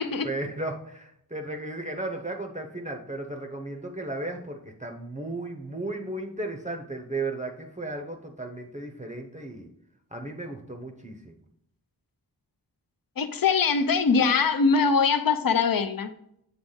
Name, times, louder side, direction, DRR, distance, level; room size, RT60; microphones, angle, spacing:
voice 1, 0.0-9.7 10.1-11.3, right 2 dB, 20° right, 3 dB, 0.6 m, -35 dB
voice 2, 13.2-16.1, left 5 dB, 55° left, 10 dB, 0.6 m, -22 dB
7.6 x 3.5 x 3.8 m, 0.74 s
wide cardioid pair, 70°, 41 cm